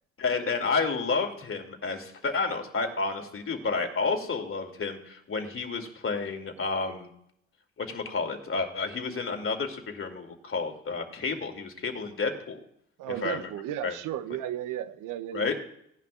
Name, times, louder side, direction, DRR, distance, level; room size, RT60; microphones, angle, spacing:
voice 1, 0.2-7.1 7.8-12.6 13.1-13.5 13.8-14.0 15.3-15.5, left 4 dB, 40° left, 4 dB, 2.7 m, -30 dB
voice 2, 13.0-15.6, right 11 dB, 70° right, 13 dB, 0.9 m, -35 dB
18.0 x 11.0 x 2.5 m, 0.71 s
supercardioid pair, 60°, 33 cm